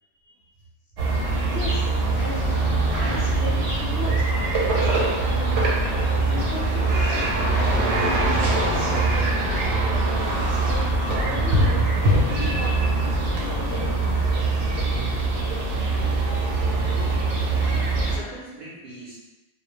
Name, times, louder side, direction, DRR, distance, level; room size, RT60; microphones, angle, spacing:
sound 1, 1.0-18.2, right 2 dB, 80° right, 0.9 m, -22 dB
voice 1, 1.4-1.9 2.2-2.6 2.9-6.9 7.4-7.6 8.6-9.6 9.9-14.3, left 3 dB, 65° left, -4 dB, 0.7 m, -36 dB
voice 2, 17.4-19.2, right 1 dB, 55° right, -7 dB, 0.6 m, -42 dB
2.2 x 2.1 x 3.0 m, 1.1 s
omnidirectional pair, 1.2 m